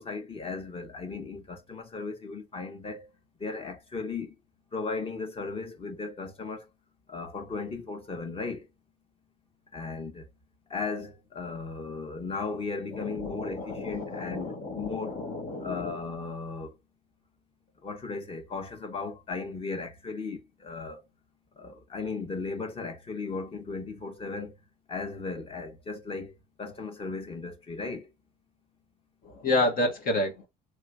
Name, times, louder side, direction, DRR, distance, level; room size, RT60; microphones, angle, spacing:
voice 1, 0.0-3.1 3.4-4.4 4.7-6.7 7.1-8.7 9.7-10.3 10.7-15.2 15.6-16.8 17.8-21.0 21.6-24.5 24.9-28.1, left 4 dB, 35° left, 1.2 m, -36 dB
voice 2, 12.9-16.0 29.2-30.5, left 2 dB, 60° left, 1.3 m, -30 dB
3.3 x 3.0 x 2.4 m
cardioid pair, 110°, 17 cm